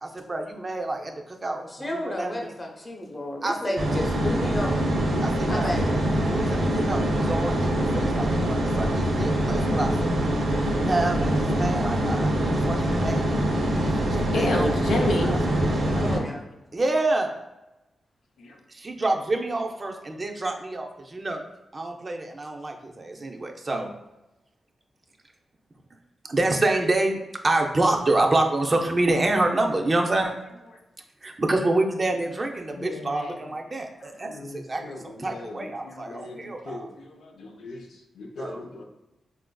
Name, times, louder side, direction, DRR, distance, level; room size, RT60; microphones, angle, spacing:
voice 1, 0.0-2.5 3.4-3.7 5.2-5.8 6.2-10.1 10.6-13.6 13.8-15.7 16.7-17.4 18.7-21.4 21.7-23.9 26.2-27.2 27.4-30.3 31.2-36.9 38.4-38.6, right 2 dB, 35° right, 2 dB, 0.4 m, -27 dB
voice 2, 1.8-4.8 5.5-5.9 15.8-16.4, left 1 dB, 30° left, 1 dB, 0.7 m, -32 dB
sound 1, 3.8-16.2, right 1 dB, 85° right, 0.7 m, -24 dB
voice 3, 14.3-15.3 18.4-18.6 32.7-33.3 34.2-37.9 38.2-38.8, left 2 dB, 85° left, 2 dB, 0.4 m, -32 dB
4.0 x 2.4 x 2.2 m, 0.98 s
cardioid pair, 75°, 0 cm